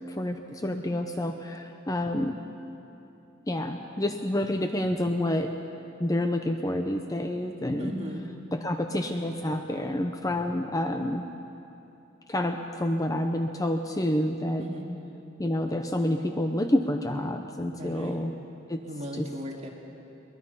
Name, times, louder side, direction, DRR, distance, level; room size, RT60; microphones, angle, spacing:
voice 1, 0.1-2.3 3.5-5.5 6.0-7.9 8.5-11.2 12.3-14.6 15.4-18.3 18.7-18.8 19.1-19.3, left 1 dB, 20° left, 5 dB, 0.7 m, -28 dB
voice 2, 7.8-8.2 14.6-14.9 17.8-18.2 18.9-19.7, equal, 35° right, -1 dB, 2.5 m, -37 dB
22.5 x 20.0 x 5.7 m, 2.9 s
head